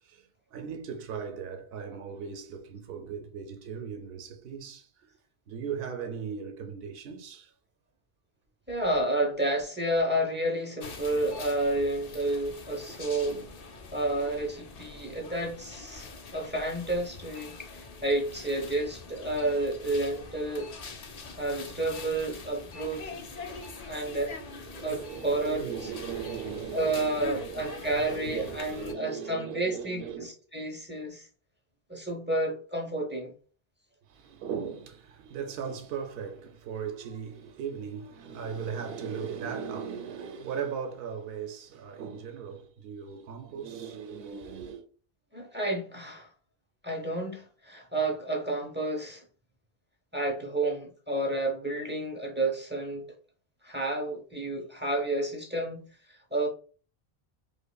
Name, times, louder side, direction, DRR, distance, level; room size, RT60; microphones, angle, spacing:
voice 1, 0.0-5.1 5.5-7.5 13.2-13.6 16.0-16.1 23.4-30.4 34.0-44.9, right 7 dB, 70° right, 0.8 m, -38 dB
voice 2, 8.7-13.4 13.9-20.7 21.1-23.1 23.8-24.4 24.8-25.6 26.7-31.3 31.9-33.3 45.3-46.3 46.8-49.2 50.1-53.2 53.6-56.5, right 1 dB, 15° right, 0.6 m, -30 dB
sound 1, 10.8-28.9, left 4 dB, 50° left, 0.5 m, -44 dB
5.1 x 2.1 x 2.3 m
omnidirectional pair, 1.0 m